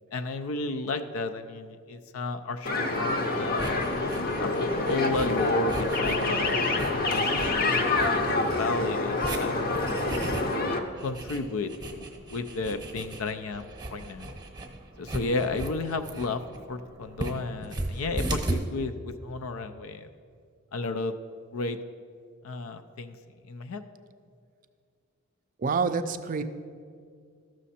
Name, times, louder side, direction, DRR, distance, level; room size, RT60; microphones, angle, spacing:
voice 1, 0.1-3.9 4.4-4.5 4.8-8.2 8.6-9.5 11.0-12.0 12.3-14.3 15.0-16.4 16.7-20.1 20.7-21.1 21.5-21.8 22.4-23.2 23.5-23.8, left 3 dB, 75° left, 9 dB, 0.5 m, -33 dB
sound 1, 2.7-10.8, left 2 dB, 45° left, 0.8 m, -27 dB
sound 2, 2.9-18.6, right 1 dB, 20° right, 0.8 m, -38 dB
voice 2, 25.6-26.4, right 5 dB, 40° right, 10 dB, 0.4 m, -27 dB
13.5 x 6.3 x 4.2 m, 2.2 s
head